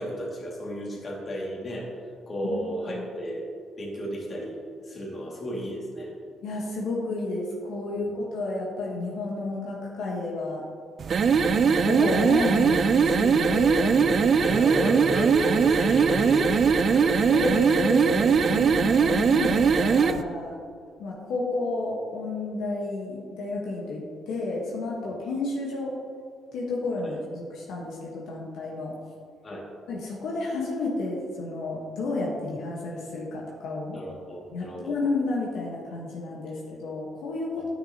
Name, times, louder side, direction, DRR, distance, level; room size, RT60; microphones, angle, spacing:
voice 1, 0.0-1.9 2.3-3.5 3.8-4.6 4.8-6.1 8.0-8.2 13.9-14.1 14.4-17.5 18.4-18.6 25.0-25.1 27.0-27.1 29.4-29.7 33.9-34.9, equal, 40° left, -3 dB, 2.0 m, -33 dB
voice 2, 6.4-10.6 11.5-14.0 17.2-20.6 21.0-25.9 26.5-28.9 29.9-34.0 34.5-37.7, left 2 dB, 85° left, -3 dB, 1.2 m, -31 dB
sound 1, 11.0-20.2, right 5 dB, 50° right, 0.3 m, -21 dB
9.8 x 6.2 x 2.8 m, 2.1 s
cardioid pair, 90°, 0 cm